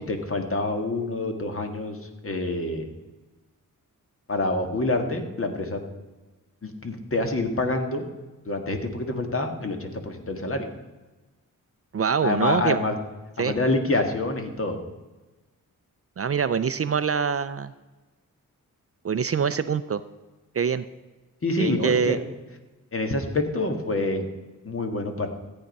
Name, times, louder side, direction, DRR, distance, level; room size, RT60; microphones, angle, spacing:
voice 1, 0.0-2.0 2.2-2.9 4.3-5.8 6.6-8.0 8.4-10.7 12.2-13.0 13.4-14.8 21.4-22.2 22.9-24.3 24.6-25.3, left 2 dB, 40° left, 5 dB, 1.7 m, -26 dB
voice 2, 11.9-12.8 13.4-13.5 16.2-17.7 19.0-20.0 20.5-20.8 21.6-22.2, right 6 dB, 45° right, 13 dB, 0.5 m, -24 dB
14.0 x 8.8 x 5.4 m, 1.2 s
wide cardioid pair, 120°, 33 cm